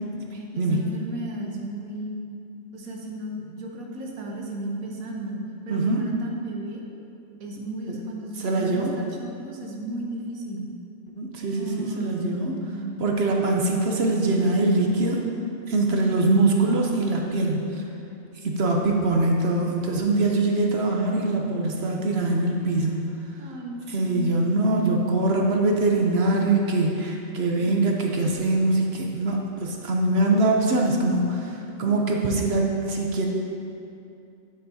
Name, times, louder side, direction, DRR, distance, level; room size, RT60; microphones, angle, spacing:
voice 1, 0.5-2.1 2.7-6.8 7.4-10.7 11.6-13.2 15.9-16.6 23.4-25.5, right 1 dB, 85° right, 0 dB, 1.4 m, -35 dB
voice 2, 5.7-6.1 7.9-8.0 8.4-8.9 11.2-12.5 13.0-15.2 15.7-17.7 18.4-23.0 23.9-33.3, right 2 dB, 55° right, 0 dB, 0.9 m, -23 dB
8.9 x 8.3 x 2.7 m, 2.6 s
omnidirectional pair, 1.4 m